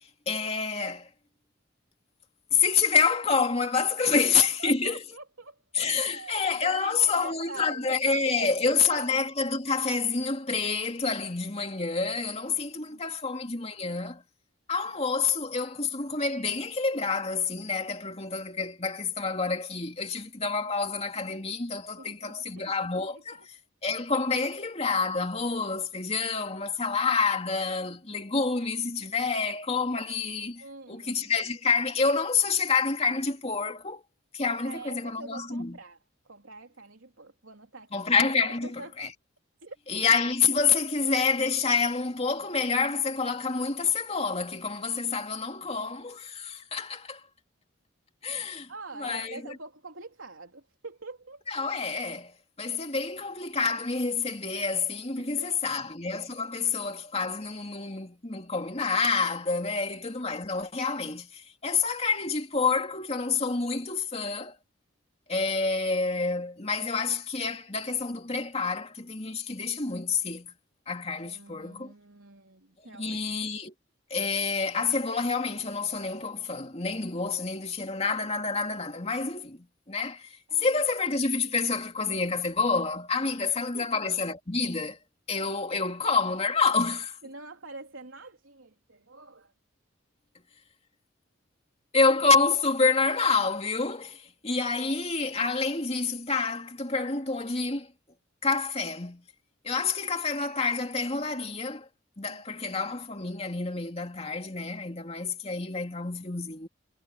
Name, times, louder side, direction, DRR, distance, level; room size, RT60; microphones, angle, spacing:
voice 1, 0.3-1.1 2.5-5.0 5.7-14.2 14.7-23.4 23.8-34.0 34.3-35.8 37.9-38.7 39.0-39.1 39.9-47.2 48.2-48.7 49.0-49.4 51.5-64.6 65.3-70.5 70.9-71.9 72.8-73.7 74.1-85.0 85.3-87.2 91.9-97.9 98.4-99.2 99.6-101.9 102.2-106.7, left 4 dB, 30° left, 2.5 m, -28 dB
voice 2, 4.0-8.0 8.2-9.0 12.8-13.0 14.8-15.0 22.0-22.8 23.1-23.5 30.6-31.3 34.6-36.0 36.2-38.1 38.6-39.1 39.6-39.8 48.7-51.4 55.2-55.8 56.7-56.8 59.8-59.9 71.2-73.2 80.5-80.8 83.4-84.0 87.2-89.5 102.3-102.4, right 3 dB, 80° right, 3.5 m, -45 dB
head